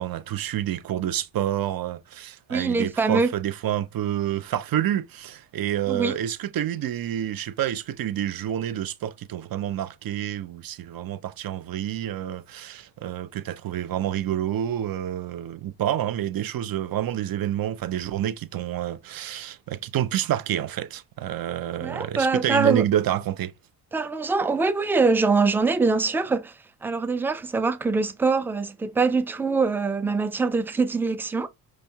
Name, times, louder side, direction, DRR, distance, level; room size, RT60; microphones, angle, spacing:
voice 1, 0.0-23.5, right 11 dB, 50° right, 0.7 m, -28 dB
voice 2, 2.5-3.3 5.9-6.1 21.8-22.8 23.9-31.5, right 4 dB, 5° right, 0.4 m, -23 dB
5.1 x 3.1 x 2.3 m
supercardioid pair, 65°, 46 cm